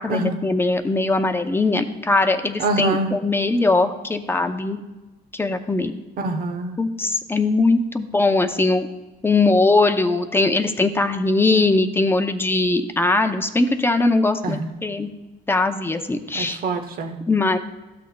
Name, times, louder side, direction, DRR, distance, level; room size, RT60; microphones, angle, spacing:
voice 1, 0.0-4.8 5.3-6.0 6.8-8.9 9.2-15.1 15.5-16.6 17.3-17.6, left 3 dB, 15° left, 7 dB, 0.6 m, -20 dB
voice 2, 2.6-3.1 6.2-6.8 14.4-14.7 16.3-17.2, right 3 dB, 60° right, 7 dB, 1.0 m, -25 dB
13.5 x 6.3 x 2.3 m, 1.1 s
cardioid pair, 110°, 17 cm